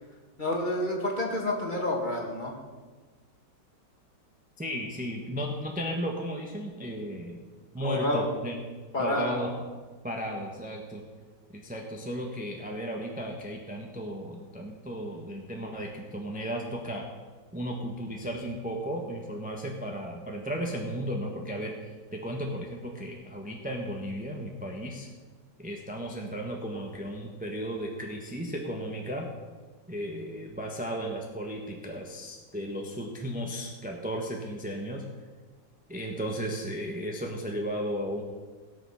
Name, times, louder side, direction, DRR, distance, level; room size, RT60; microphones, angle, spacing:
voice 1, 0.4-2.6 7.8-8.3 8.9-9.4, left 1 dB, 25° left, 0 dB, 2.1 m, -29 dB
voice 2, 4.6-7.4 7.7-8.6 9.0-9.6 10.0-11.0 11.5-17.1 17.5-25.1 25.6-29.3 29.9-35.0 35.9-38.2, equal, 5° right, 0 dB, 1.1 m, -35 dB
18.0 x 7.2 x 5.6 m, 1.4 s
omnidirectional pair, 1.9 m